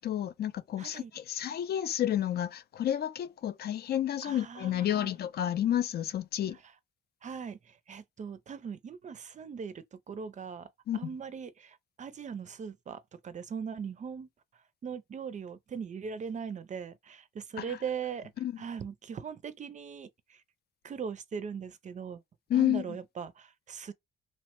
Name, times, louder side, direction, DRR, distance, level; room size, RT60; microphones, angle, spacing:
voice 1, 0.0-6.6 10.9-11.0 17.6-17.8 18.4-18.5 22.5-22.8, left 11 dB, 55° left, 0.4 m, -30 dB
voice 2, 0.8-1.1 4.2-5.1 7.2-10.7 10.9-14.3 14.8-18.3 18.6-20.4 20.8-22.2 22.5-23.9, right 6 dB, 40° right, 0.4 m, -40 dB
3.0 x 2.1 x 2.9 m
cardioid pair, 90°, 20 cm